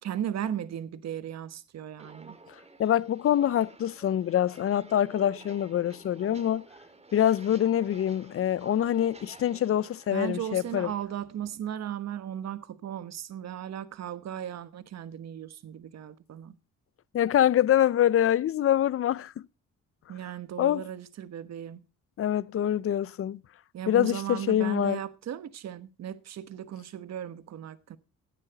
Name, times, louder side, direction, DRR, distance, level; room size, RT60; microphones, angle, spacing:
voice 1, 0.0-2.4 10.1-16.6 20.1-21.8 23.7-28.0, right 10 dB, 60° right, 1.2 m, -36 dB
Walk footsteps, 2.0-11.0, right 3 dB, 20° right, 2.2 m, -51 dB
voice 2, 2.8-6.6 7.1-10.9 17.1-19.3 20.6-20.8 22.2-23.4 23.9-25.0, left 11 dB, 45° left, 0.5 m, -25 dB
16.5 x 9.7 x 4.0 m
cardioid pair, 90°, 30 cm